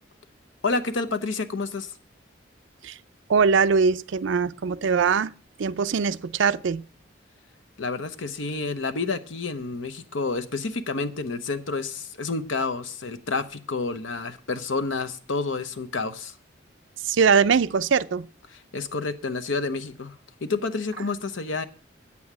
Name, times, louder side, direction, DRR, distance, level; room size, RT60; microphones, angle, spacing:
voice 1, 0.6-1.9 7.8-16.3 18.7-20.1 20.4-21.7, left 3 dB, 85° left, 0.9 m, -29 dB
voice 2, 3.3-5.3 5.6-6.8 17.0-18.3, right 5 dB, 75° right, 0.4 m, -21 dB
8.5 x 8.5 x 6.0 m
head